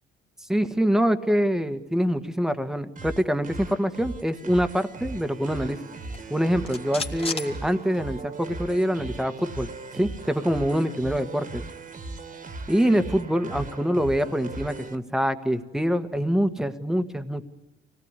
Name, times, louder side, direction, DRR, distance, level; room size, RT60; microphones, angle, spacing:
voice 1, 0.5-5.8 6.3-9.7 9.9-11.6 12.7-17.4, equal, 5° right, 9 dB, 1.6 m, -25 dB
sound 1, 3.0-15.0, right 3 dB, 45° right, 2.1 m, -38 dB
sound 2, 6.0-8.4 8.7-8.8 9.1-11.0, left 4 dB, 30° left, 2.2 m, -38 dB
25.5 x 18.5 x 9.8 m, 1.1 s
cardioid pair, 90°, 20 cm